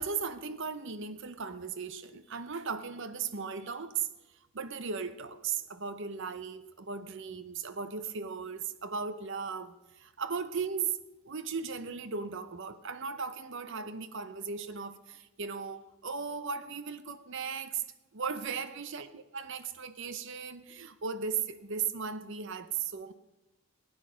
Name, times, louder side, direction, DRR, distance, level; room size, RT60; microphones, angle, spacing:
voice 1, 0.0-4.1 4.5-11.0 11.2-17.8 18.1-23.1, right 5 dB, 55° right, 0.7 m, -37 dB
15.5 x 9.7 x 5.1 m
head